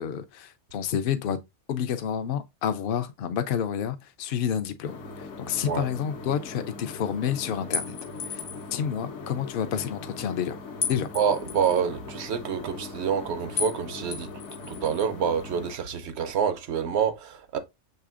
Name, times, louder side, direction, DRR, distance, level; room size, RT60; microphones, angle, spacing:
voice 1, 0.0-1.4 1.7-8.0 8.3-8.4 8.7-10.6 10.9-11.1, left 8 dB, 55° left, 0.7 m, -29 dB
sound 1, 4.8-15.7, left 3 dB, 75° left, 1.1 m, -40 dB
sound 2, 7.7-8.7 10.8-11.8 13.6-13.8 14.1-15.1, left 6 dB, 90° left, 1.4 m, -33 dB
voice 2, 11.1-14.3 14.7-17.6, right 7 dB, 65° right, 0.9 m, -27 dB
6.7 x 3.3 x 2.4 m
omnidirectional pair, 1.2 m